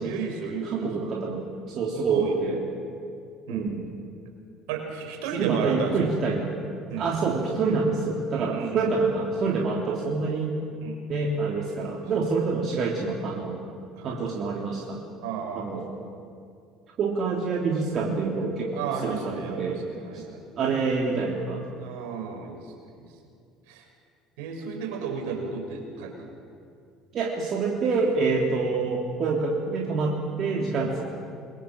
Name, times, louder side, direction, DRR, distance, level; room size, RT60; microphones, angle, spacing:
voice 1, 0.0-0.9 1.9-2.4 3.5-3.7 4.7-6.1 6.9-7.1 8.3-8.9 10.8-11.0 13.9-14.2 15.2-15.8 18.7-20.4 21.8-22.6 23.0-23.1 23.7-23.9 24.4-26.3 30.8-30.9, right 6 dB, 70° right, 3 dB, 6.0 m, -33 dB
voice 2, 0.7-2.6 3.5-3.8 5.3-6.5 7.0-10.6 11.1-13.6 14.0-15.0 15.6-15.9 17.0-19.8 20.1-20.2 20.5-21.6 27.1-31.0, right 4 dB, 50° right, -1 dB, 3.3 m, -27 dB
28.0 x 23.0 x 7.7 m, 2.4 s
hypercardioid pair, 60°, 0 cm